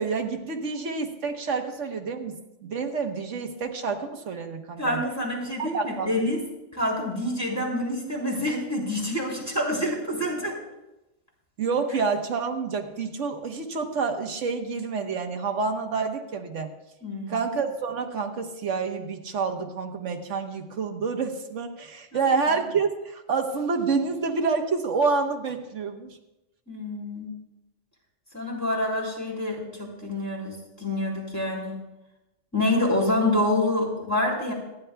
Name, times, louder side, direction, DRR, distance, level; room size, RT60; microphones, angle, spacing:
voice 1, 0.0-5.0 5.6-6.1 11.6-16.7 17.3-26.1, right 4 dB, 90° right, 4 dB, 1.4 m, -28 dB
voice 2, 4.8-6.4 6.7-10.6 17.0-17.5 22.1-22.3 26.7-27.3 28.3-31.8 32.5-34.5, left 1 dB, 15° left, -4 dB, 3.6 m, -27 dB
26.0 x 10.5 x 2.3 m, 0.96 s
omnidirectional pair, 1.2 m